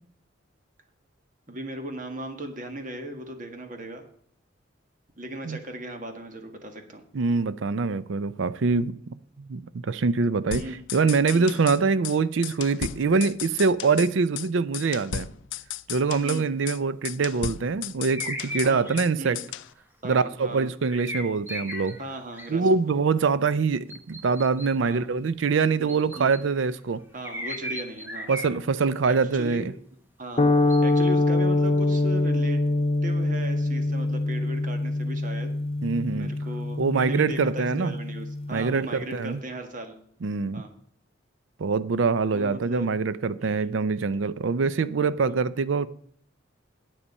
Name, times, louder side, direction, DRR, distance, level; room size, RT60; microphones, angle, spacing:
voice 1, 1.5-4.0 5.2-7.0 10.5-10.8 11.3-11.5 16.2-16.5 18.6-18.9 19.2-19.4 20.0-20.7 22.0-22.7 24.8-25.0 25.8-26.3 27.1-28.3 29.1-29.7 30.2-30.4 30.8-32.6 33.0-35.5 36.1-40.0 40.5-40.7 42.3-42.9 43.4-43.6 45.2-45.3, right 1 dB, 40° right, 1.6 m, -37 dB
voice 2, 7.1-15.3 15.9-19.4 20.0-22.0 22.5-27.0 28.3-29.7 35.8-36.3 36.8-38.0 38.5-39.4 40.2-40.6 41.6-45.9, right 4 dB, 80° right, 0.5 m, -24 dB
sound 1, 10.5-11.8 12.0-12.2 12.4-14.1 14.4-14.5 14.7-16.4 16.7-16.8 17.0-19.1 19.3-19.7, left 10 dB, 80° left, 0.4 m, -35 dB
sound 2, 18.1-19.0 19.5-19.7 20.9-22.0 22.3-22.7 23.9-24.7 25.9-26.6 27.2-28.9 29.2-29.3 30.7-31.0, equal, 10° right, 1.4 m, -36 dB
sound 3, 30.4-38.7, left 2 dB, 30° left, 0.5 m, -25 dB
9.8 x 8.8 x 5.4 m
head